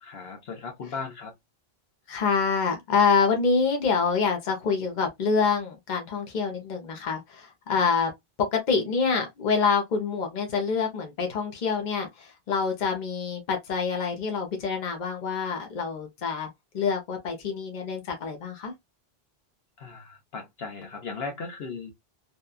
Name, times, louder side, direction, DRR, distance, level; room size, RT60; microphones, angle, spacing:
voice 1, 0.0-1.3 7.7-7.9 19.8-21.9, left 4 dB, 75° left, 1.1 m, -37 dB
voice 2, 2.1-8.1 8.4-18.7, left 5 dB, 50° left, 0.9 m, -26 dB
2.9 x 2.3 x 2.3 m
omnidirectional pair, 1.0 m